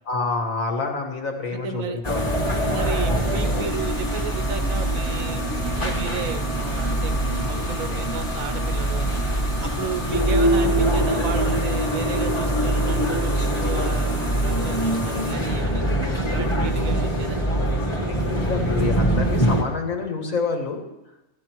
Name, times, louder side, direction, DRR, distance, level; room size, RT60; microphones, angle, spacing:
voice 1, 0.1-2.4 9.6-10.0 18.5-20.8, left 4 dB, 65° left, 2 dB, 2.1 m, -27 dB
voice 2, 1.5-2.0 2.7-9.2 9.6-17.5, right 6 dB, 70° right, 8 dB, 1.4 m, -33 dB
sound 1, 2.0-19.6, right 1 dB, 20° left, 1.7 m, -23 dB
13.5 x 12.5 x 4.6 m, 0.91 s
omnidirectional pair, 1.5 m